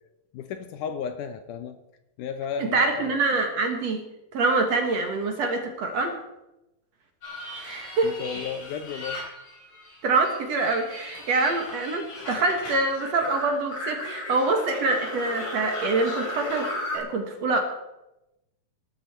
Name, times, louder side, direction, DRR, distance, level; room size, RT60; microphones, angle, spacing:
voice 1, 0.3-1.8 2.2-3.2 8.0-9.3, left 7 dB, 75° left, 9 dB, 2.1 m, -34 dB
voice 2, 2.6-4.0 4.3-6.2 7.6-8.1 10.0-17.6, right 3 dB, 55° right, 4 dB, 2.4 m, -25 dB
sound 1, 7.2-10.0 10.2-17.0, left 1 dB, 55° left, 5.8 m, -36 dB
19.0 x 12.5 x 4.4 m, 0.92 s
omnidirectional pair, 4.1 m